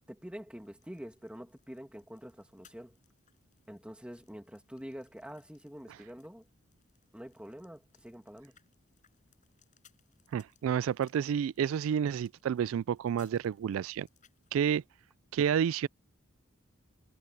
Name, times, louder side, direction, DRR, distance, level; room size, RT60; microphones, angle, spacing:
voice 1, 0.1-3.0 3.7-6.4 7.1-8.5, equal, 5° right, 2.3 m, -46 dB
sound 1, 0.6-14.5, left 9 dB, 40° left, 5.8 m, -69 dB
voice 2, 10.3-14.1 14.5-14.8 15.3-15.9, right 8 dB, 80° right, 0.3 m, -30 dB
head